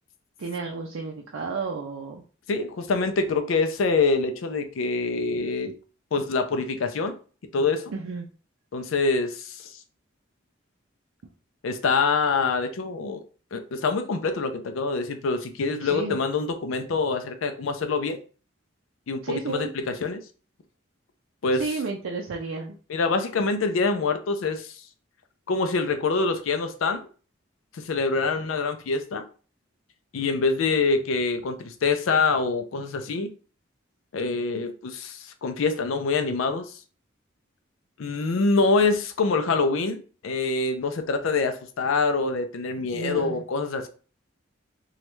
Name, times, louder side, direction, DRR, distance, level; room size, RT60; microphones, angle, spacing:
voice 1, 0.4-2.2 7.9-8.3 15.8-16.2 19.2-19.7 21.6-22.8 42.9-43.4, right 4 dB, 80° right, 1 dB, 0.4 m, -32 dB
voice 2, 2.5-5.7 6.1-7.1 7.5-7.9 8.7-9.8 11.6-13.2 13.5-18.2 19.1-20.2 21.4-21.6 22.9-24.8 25.5-27.1 27.7-29.2 30.1-33.3 34.1-36.8 38.0-43.9, left 4 dB, 85° left, 7 dB, 0.4 m, -25 dB
3.1 x 2.3 x 3.0 m, 0.39 s
head